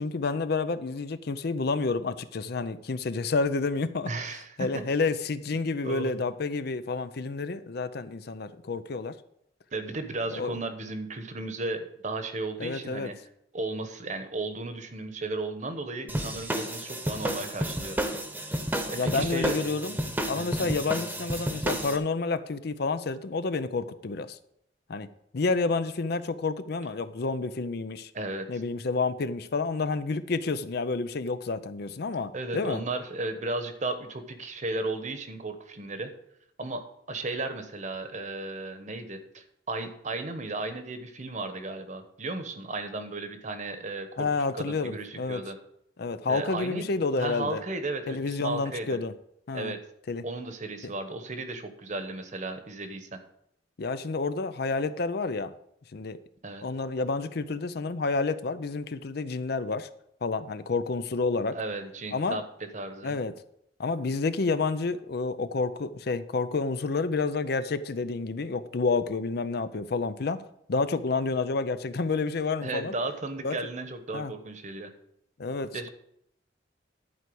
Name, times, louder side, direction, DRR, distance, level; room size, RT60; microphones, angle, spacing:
voice 1, 0.0-4.1 4.6-9.2 10.3-10.5 12.6-13.1 18.9-20.0 20.3-24.4 24.9-28.1 28.5-32.8 44.2-45.4 46.0-47.6 48.1-49.1 49.5-49.7 50.1-50.2 50.8-50.9 53.8-55.5 55.9-56.2 56.6-59.9 60.2-61.6 62.1-62.4 63.0-63.3 63.8-70.4 70.7-72.9 73.4-73.6 74.1-74.3 75.4-75.9, left 4 dB, 60° left, 13 dB, 0.5 m, -29 dB
voice 2, 4.0-4.8 5.8-6.2 9.7-13.1 13.5-18.0 18.9-19.6 20.4-20.8 28.1-28.5 32.3-36.1 36.6-45.6 46.3-46.9 47.2-49.0 49.5-49.8 50.2-53.2 56.4-56.7 61.5-62.4 62.7-63.2 72.6-74.9 75.7-75.9, right 2 dB, 40° right, 8 dB, 1.1 m, -35 dB
sound 1, 16.1-22.0, right 1 dB, 10° right, 1.0 m, -31 dB
11.0 x 4.6 x 7.8 m, 0.74 s
head